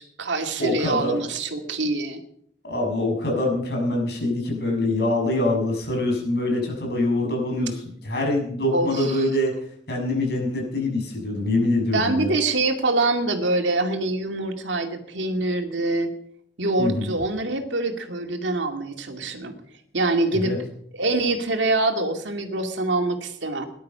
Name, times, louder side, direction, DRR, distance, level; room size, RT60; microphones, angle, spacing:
voice 1, 0.0-2.2 8.7-9.3 11.9-16.1 16.6-19.5 19.9-20.5 20.9-23.7, right 2 dB, 85° right, 5 dB, 2.3 m, -25 dB
voice 2, 0.6-1.2 2.6-9.5 9.9-12.3 16.8-17.1 20.3-20.6, left 1 dB, 60° left, 0 dB, 6.8 m, -24 dB
19.0 x 11.5 x 5.7 m, 0.67 s
head